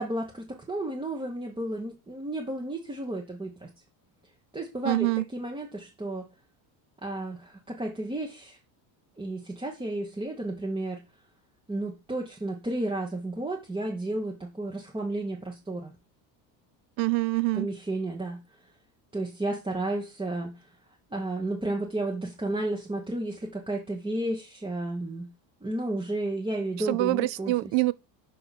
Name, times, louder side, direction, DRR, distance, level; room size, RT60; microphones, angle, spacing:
voice 1, 0.0-3.7 4.5-6.3 7.0-8.6 9.2-11.0 11.7-15.9 17.5-18.4 19.1-20.7 21.1-25.3 25.6-27.7, right 2 dB, 10° right, 1.1 m, -32 dB
voice 2, 4.8-5.2 17.0-17.7 26.8-27.9, right 20 dB, 65° right, 0.6 m, -25 dB
6.0 x 5.0 x 4.1 m
cardioid pair, 115°, 49 cm